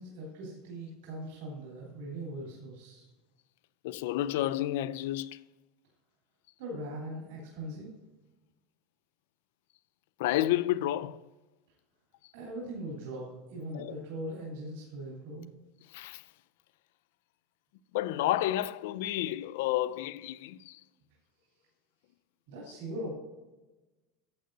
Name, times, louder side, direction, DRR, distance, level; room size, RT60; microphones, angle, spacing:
voice 1, 0.0-3.0 6.6-7.9 12.3-15.5 22.5-23.1, right 1 dB, 90° right, 3.0 m, -40 dB
voice 2, 3.8-5.4 10.2-11.2 13.7-14.0 15.9-16.2 17.9-20.8, left 14 dB, 80° left, 0.3 m, -30 dB
11.5 x 7.9 x 2.6 m
supercardioid pair, 160°, 0 cm